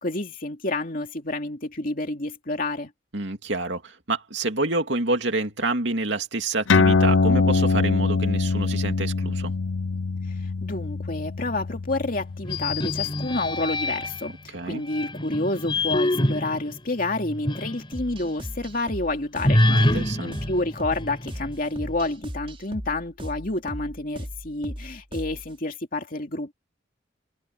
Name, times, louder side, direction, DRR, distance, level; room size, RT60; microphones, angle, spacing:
voice 1, 0.0-2.9 10.6-26.5, left 2 dB, 45° left, 2.8 m, -29 dB
voice 2, 3.1-9.5 14.5-14.8 19.7-20.3, right 2 dB, 60° right, 2.8 m, -28 dB
sound 1, 6.7-13.6, left 4 dB, 75° left, 0.6 m, -23 dB
sound 2, 12.4-14.3 14.9-17.9 18.2-18.3 19.4-21.5, left 1 dB, 25° left, 4.7 m, -25 dB
sound 3, 17.9-25.5, equal, 30° right, 5.5 m, -37 dB
head